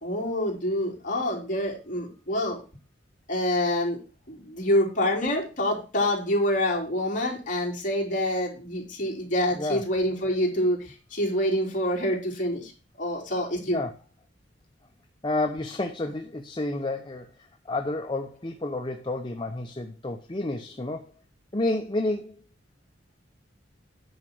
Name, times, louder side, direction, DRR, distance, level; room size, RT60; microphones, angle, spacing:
voice 1, 0.0-2.6 3.3-4.0 4.3-12.7 13.0-13.8, left 1 dB, 45° left, -1 dB, 3.2 m, -26 dB
voice 2, 15.2-21.1 21.5-22.4, left 2 dB, 25° left, 4 dB, 0.8 m, -30 dB
9.5 x 5.1 x 6.0 m, 0.33 s
head